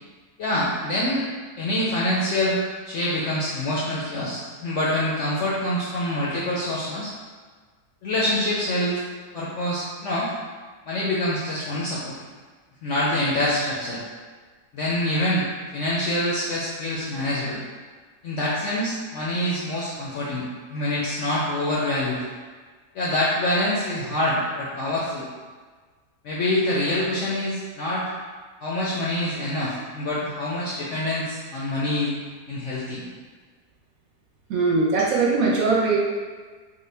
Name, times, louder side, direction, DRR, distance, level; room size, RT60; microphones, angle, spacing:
voice 1, 0.4-1.2 1.6-2.6 2.9-7.1 8.0-9.0 9.3-10.3 10.9-12.2 12.8-14.0 14.7-17.6 18.2-22.2 22.9-25.3 26.2-28.0 28.6-32.2 32.5-33.0 34.8-34.9, left 1 dB, 70° left, -6 dB, 0.7 m, -25 dB
voice 2, 34.5-36.0, right 4 dB, 70° right, -3 dB, 0.9 m, -20 dB
3.5 x 2.2 x 3.3 m, 1.4 s
omnidirectional pair, 1.7 m